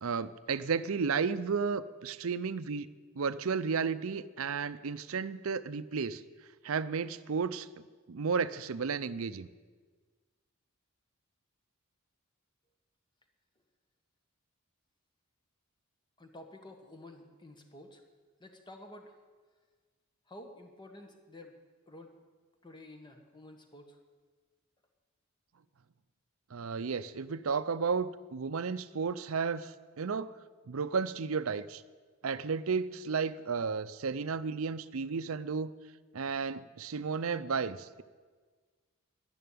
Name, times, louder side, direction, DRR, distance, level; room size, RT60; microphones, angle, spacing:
voice 1, 0.0-2.9 3.1-6.2 6.6-9.5 26.5-30.3 30.7-31.8 32.2-35.7 36.1-38.0, right 5 dB, 70° right, 14 dB, 0.6 m, -33 dB
voice 2, 16.2-18.0 18.4-19.2 20.3-21.5 21.9-22.1 22.6-24.0, left 1 dB, 20° left, 5 dB, 1.4 m, -51 dB
11.5 x 10.5 x 8.6 m, 1.4 s
head